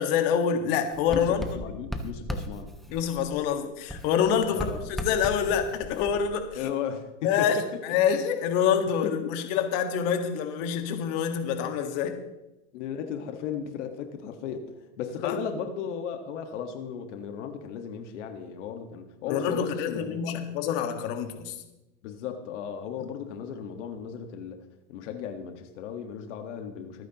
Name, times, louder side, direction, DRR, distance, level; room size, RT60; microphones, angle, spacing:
voice 1, 0.0-1.4 2.9-6.6 7.2-7.6 7.8-12.2 15.2-15.4 19.3-21.5, left 8 dB, 50° left, 6 dB, 1.7 m, -26 dB
Writing, 0.9-3.6 3.9-6.6, equal, ahead, 1.0 m, -37 dB
voice 2, 1.1-2.7 4.5-4.8 6.5-7.7 9.0-9.3 12.7-14.7 15.0-20.4 22.0-24.6 24.9-27.1, left 7 dB, 70° left, 6 dB, 1.6 m, -35 dB
25.0 x 9.6 x 3.0 m, 0.97 s
supercardioid pair, 150°, 37 cm